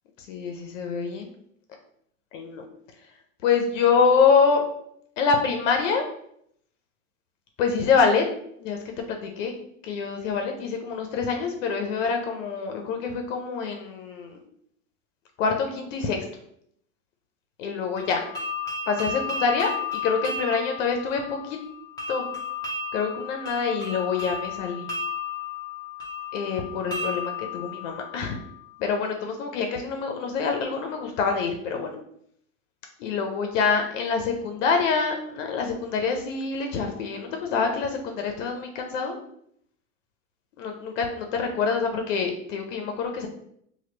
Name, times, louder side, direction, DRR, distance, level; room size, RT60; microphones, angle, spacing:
voice 1, 0.3-1.3 2.3-2.6 3.4-4.6 5.2-6.0 7.6-8.2 8.6-8.8 9.1-9.5 9.8-14.4 15.4-16.2 17.6-18.3 18.9-21.6 22.1-22.4 22.9-24.9 26.3-28.4 28.8-32.0 33.0-39.2 40.6-43.3, left 5 dB, 70° left, 4 dB, 0.6 m, -25 dB
sound 1, 18.0-28.8, left 5 dB, 10° left, 0.5 m, -34 dB
3.0 x 2.3 x 3.2 m, 0.70 s
supercardioid pair, 135°, 39 cm